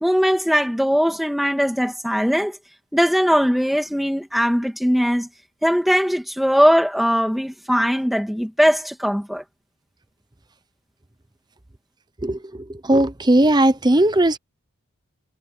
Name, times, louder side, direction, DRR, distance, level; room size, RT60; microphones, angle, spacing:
voice 1, 0.0-2.6 2.9-5.3 5.6-9.4, equal, ahead, 2.3 m, -20 dB
voice 2, 12.2-14.4, right 1 dB, 20° right, 0.8 m, -18 dB
head